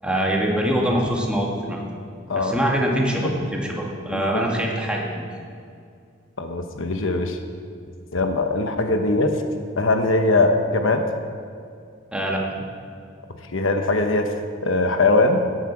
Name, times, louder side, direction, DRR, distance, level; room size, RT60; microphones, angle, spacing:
voice 1, 0.0-1.8 2.3-5.3 12.1-12.4, equal, 5° right, -2 dB, 2.0 m, -24 dB
voice 2, 4.1-4.4 6.4-7.4 8.1-9.4 9.8-11.0 13.5-14.3 14.6-15.4, left 2 dB, 65° left, 5 dB, 1.1 m, -21 dB
16.0 x 10.0 x 6.1 m, 2.3 s
head